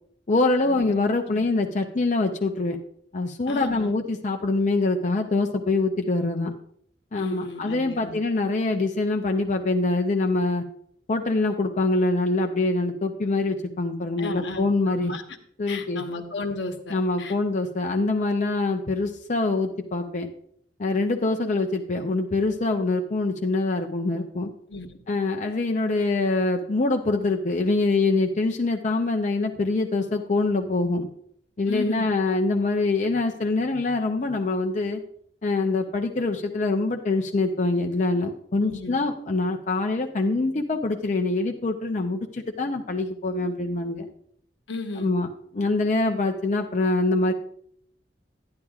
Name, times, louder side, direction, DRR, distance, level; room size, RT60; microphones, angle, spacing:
voice 1, 0.3-2.8 3.1-6.5 7.1-10.6 11.1-15.1 15.6-16.0 16.9-20.3 20.8-24.5 25.1-31.1 31.6-35.0 35.4-44.1 45.0-45.3 45.5-47.3, left 2 dB, 45° left, 3 dB, 0.6 m, -24 dB
voice 2, 3.5-3.9 7.2-8.2 14.2-15.2 15.7-17.3 24.7-24.9 31.7-32.1 38.6-39.0 44.7-45.1, left 3 dB, 85° left, 5 dB, 1.0 m, -34 dB
10.5 x 10.5 x 2.4 m, 0.65 s
head